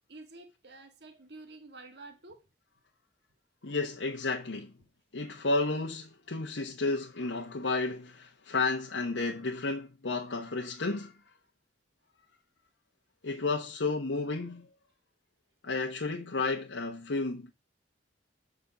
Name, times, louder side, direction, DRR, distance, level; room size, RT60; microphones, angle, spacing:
voice 1, 0.1-2.4, right 2 dB, 60° right, 1.8 m, -49 dB
voice 2, 3.6-4.7 5.1-11.1 13.2-14.7 15.6-17.5, left 3 dB, 85° left, 1.0 m, -32 dB
7.8 x 5.4 x 6.9 m
head